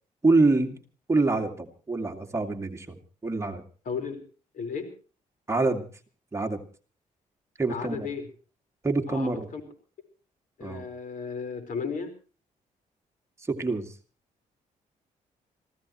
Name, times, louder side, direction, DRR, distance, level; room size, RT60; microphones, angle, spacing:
voice 1, 0.2-0.8 1.1-3.0 3.2-3.6 5.5-5.9 6.3-6.6 7.6-8.1 8.8-9.5 10.6-10.8 13.5-13.9, right 3 dB, 20° right, 4 dB, 2.2 m, -25 dB
voice 2, 3.8-4.2 4.5-4.9 7.7-8.3 9.1-9.6 10.6-12.1, left 5 dB, 70° left, 9 dB, 4.5 m, -34 dB
27.5 x 16.0 x 3.1 m, 0.37 s
cardioid pair, 95°, 14 cm